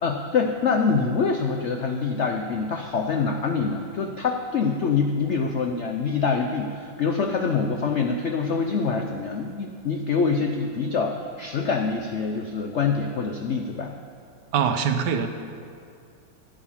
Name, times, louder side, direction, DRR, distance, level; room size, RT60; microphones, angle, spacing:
voice 1, 0.0-13.9, left 5 dB, 75° left, 4 dB, 0.6 m, -25 dB
voice 2, 14.5-15.3, right 7 dB, 70° right, 8 dB, 1.2 m, -23 dB
14.0 x 8.1 x 5.6 m, 2.4 s
omnidirectional pair, 2.0 m